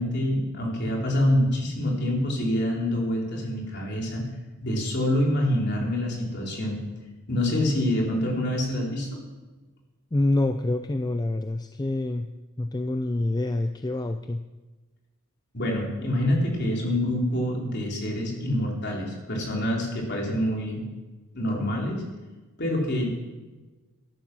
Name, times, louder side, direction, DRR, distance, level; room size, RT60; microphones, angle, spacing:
voice 1, 0.0-4.2 4.6-6.8 7.3-9.2 15.5-20.8 21.3-22.0 22.6-23.2, left 1 dB, 50° left, -1 dB, 3.9 m, -26 dB
voice 2, 10.1-12.3 12.6-14.4, left 2 dB, 20° left, 8 dB, 0.4 m, -26 dB
13.5 x 12.0 x 6.2 m, 1.2 s
head